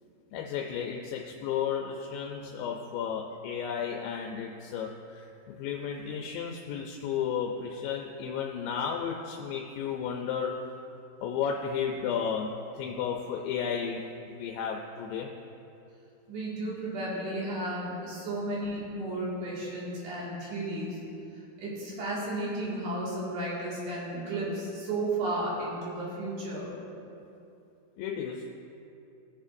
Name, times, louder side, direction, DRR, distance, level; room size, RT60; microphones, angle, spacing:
voice 1, 0.3-5.2 5.5-10.6 11.2-12.5 12.8-14.0 14.3-15.3 28.0-28.6, left 7 dB, 85° left, 1 dB, 2.3 m, -33 dB
voice 2, 16.3-21.0 21.3-26.7, right 1 dB, 65° right, -7 dB, 3.5 m, -33 dB
19.5 x 7.1 x 2.6 m, 2.7 s
omnidirectional pair, 4.0 m